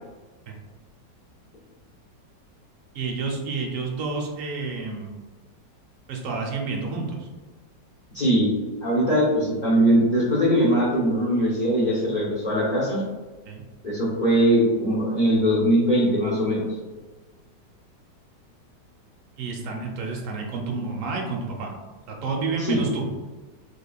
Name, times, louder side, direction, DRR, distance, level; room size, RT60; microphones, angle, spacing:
voice 1, 2.9-5.1 6.1-7.3 13.5-13.6 19.4-21.7 22.1-23.1, right 4 dB, 65° right, 1 dB, 0.8 m, -30 dB
voice 2, 8.1-8.5 8.8-13.0 13.8-16.7 22.6-22.8, equal, 35° left, -7 dB, 0.9 m, -21 dB
3.5 x 3.5 x 2.3 m, 1.3 s
omnidirectional pair, 1.9 m